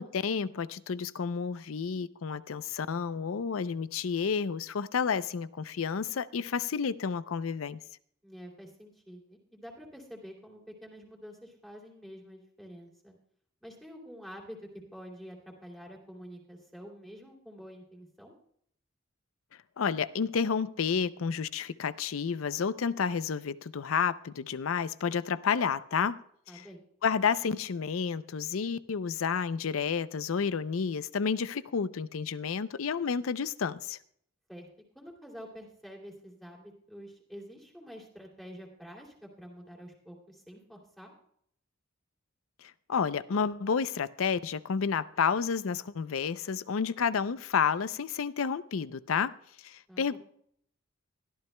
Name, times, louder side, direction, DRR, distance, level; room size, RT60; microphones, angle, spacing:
voice 1, 0.0-7.8 19.8-26.2 26.5-26.6 27.0-34.0 42.6-49.3 49.6-50.2, left 6 dB, 85° left, 15 dB, 0.5 m, -30 dB
voice 2, 8.2-13.1 13.6-14.6 14.9-18.3 26.5-26.8 34.5-34.7 34.9-41.1 49.9-50.2, equal, ahead, -2 dB, 2.7 m, -48 dB
22.5 x 13.5 x 2.2 m, 0.67 s
head